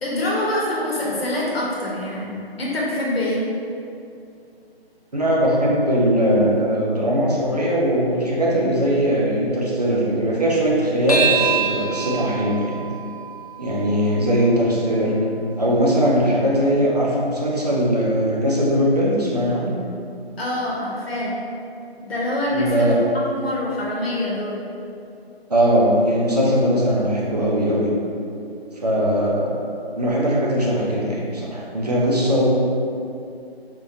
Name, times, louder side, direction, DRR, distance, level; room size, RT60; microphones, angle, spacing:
voice 1, 0.0-3.5 20.4-21.4 22.0-22.9 23.3-24.6, left 1 dB, 70° left, -5 dB, 1.0 m, -25 dB
voice 2, 5.1-12.8 13.6-15.2 15.6-19.8 22.5-23.0 25.5-27.9 28.8-29.5 29.9-32.5, equal, 40° right, -4 dB, 0.5 m, -20 dB
sound 1, 11.1-15.8, right 6 dB, 40° left, 0.4 m, -27 dB
3.6 x 2.5 x 2.6 m, 2.6 s
figure-of-eight pair, 175°, 31 cm